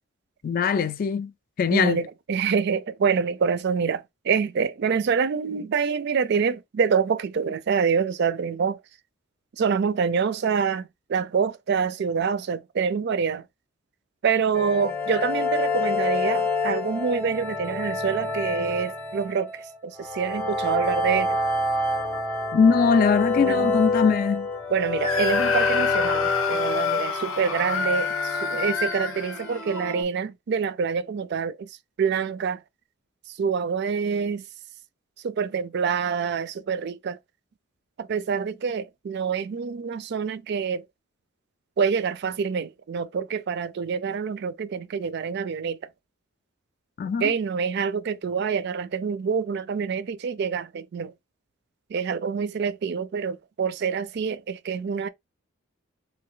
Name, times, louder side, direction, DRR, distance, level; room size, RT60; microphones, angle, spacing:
voice 1, 0.4-1.3 1.6-2.0 22.5-24.5 47.0-47.3, left 6 dB, 45° left, 0.3 m, -21 dB
voice 2, 1.7-8.8 9.6-13.4 14.2-21.4 23.4-23.7 24.7-31.7 32.0-32.6 33.4-34.4 35.2-37.2 38.0-40.8 41.8-45.8 47.2-51.1 51.9-55.1, right 6 dB, 55° right, 0.3 m, -26 dB
sound 1, 14.5-30.0, left 3 dB, 10° left, 0.7 m, -28 dB
Screaming, 25.0-29.9, left 5 dB, 85° left, 0.7 m, -28 dB
3.2 x 2.5 x 3.7 m
head